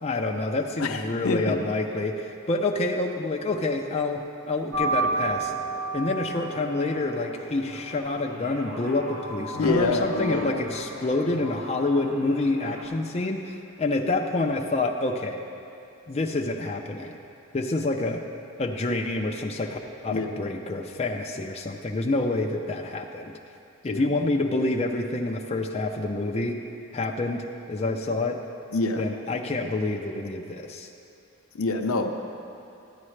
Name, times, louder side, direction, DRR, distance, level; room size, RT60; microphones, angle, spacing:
voice 1, 0.0-5.5 5.9-15.4 16.1-17.2 17.5-18.2 18.6-23.3 23.8-26.6 26.9-28.4 29.0-30.9, left 2 dB, 30° left, 1 dB, 0.5 m, -27 dB
voice 2, 0.8-1.6 9.5-10.6 20.1-20.4 23.9-24.1 28.7-29.0 31.5-32.1, left 3 dB, 70° left, 4 dB, 0.7 m, -26 dB
sound 1, 4.7-12.8, right 3 dB, 65° right, 1.8 m, -33 dB
14.0 x 9.6 x 3.2 m, 2.7 s
head